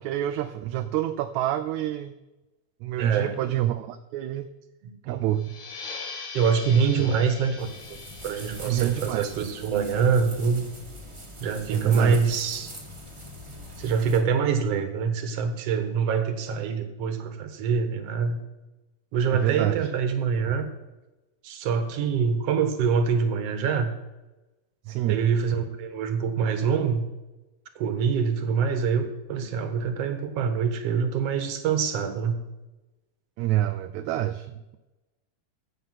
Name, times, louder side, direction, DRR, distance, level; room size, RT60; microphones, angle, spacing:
voice 1, 0.0-2.1 2.8-4.5 5.1-5.5 7.0-7.1 8.6-9.3 11.7-12.2 19.3-19.9 24.9-25.2 33.4-34.8, right 13 dB, 80° right, 8 dB, 1.9 m, -27 dB
voice 2, 3.0-3.5 4.8-5.3 6.3-8.0 8.2-10.6 11.4-12.7 13.8-18.4 19.1-20.7 21.4-23.9 25.1-27.0 27.8-32.4, right 6 dB, 60° right, 8 dB, 2.2 m, -25 dB
sound 1, 5.3-10.6, left 4 dB, 70° left, 3.0 m, -42 dB
sound 2, 7.6-14.2, equal, 15° right, 1.5 m, -42 dB
15.5 x 6.7 x 5.8 m, 1.0 s
omnidirectional pair, 3.4 m